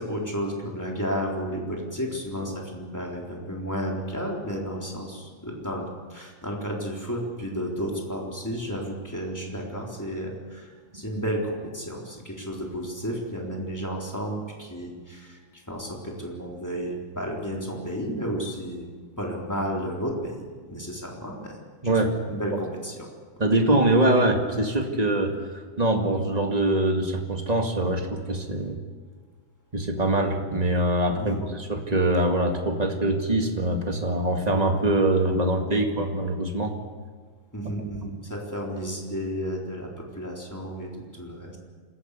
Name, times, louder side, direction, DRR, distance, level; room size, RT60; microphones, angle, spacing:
voice 1, 0.0-18.9 19.2-21.6 21.8-23.1 31.2-31.5 37.5-41.6, equal, 5° left, -1 dB, 3.5 m, -32 dB
voice 2, 21.8-22.1 23.4-28.8 29.7-36.7, right 1 dB, 15° right, 3 dB, 1.5 m, -23 dB
26.0 x 14.5 x 8.3 m, 1.5 s
omnidirectional pair, 3.5 m